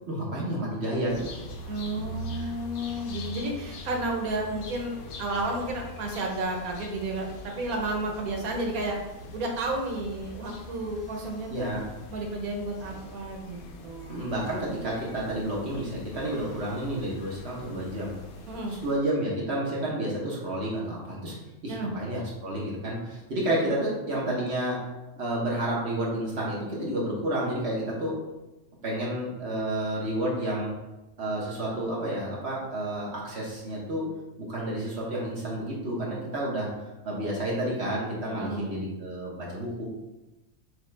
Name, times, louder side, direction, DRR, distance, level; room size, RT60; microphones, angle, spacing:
voice 1, 0.1-1.5 2.3-2.5 11.5-11.8 14.1-18.1 18.7-21.3 21.6-24.8 25.2-28.2 28.8-30.7 31.2-34.1 34.4-36.7 37.0-39.8, right 1 dB, 50° right, -4 dB, 1.3 m, -30 dB
sound 1, 1.1-19.1, left 1 dB, 90° left, 1.1 m, -43 dB
voice 2, 1.7-9.0 9.3-11.7 12.1-14.3 18.5-18.8 21.7-21.9 38.2-38.9, right 2 dB, 90° right, 1 dB, 1.3 m, -32 dB
6.4 x 2.4 x 3.2 m, 0.99 s
omnidirectional pair, 1.5 m